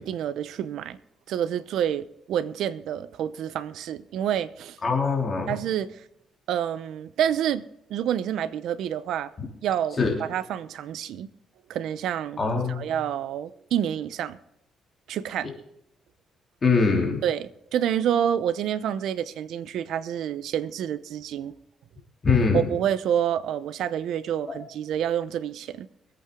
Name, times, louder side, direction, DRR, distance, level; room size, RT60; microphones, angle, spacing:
voice 1, 0.1-1.0 1.3-4.8 5.5-6.0 6.5-7.6 7.9-9.3 9.6-11.3 11.7-12.4 12.8-14.4 15.1-15.5 17.2-21.6 22.5-25.9, right 9 dB, 80° right, 0.8 m, -28 dB
voice 2, 4.8-5.5 10.0-10.1 12.4-12.8 16.6-17.2 22.2-22.6 24.5-24.6, left 4 dB, 35° left, 3.3 m, -22 dB
23.5 x 8.6 x 3.8 m
cardioid pair, 90°, 0 cm